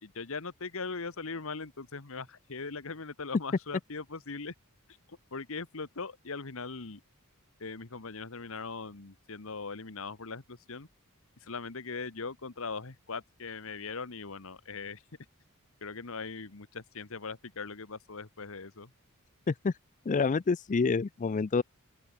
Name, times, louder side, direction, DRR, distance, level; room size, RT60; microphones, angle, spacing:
voice 1, 0.0-4.5 5.1-7.0 7.6-10.9 11.4-15.0 15.8-18.9, left 4 dB, 65° left, 1.4 m, -40 dB
voice 2, 20.1-21.6, left 4 dB, 35° left, 0.4 m, -27 dB
open air
head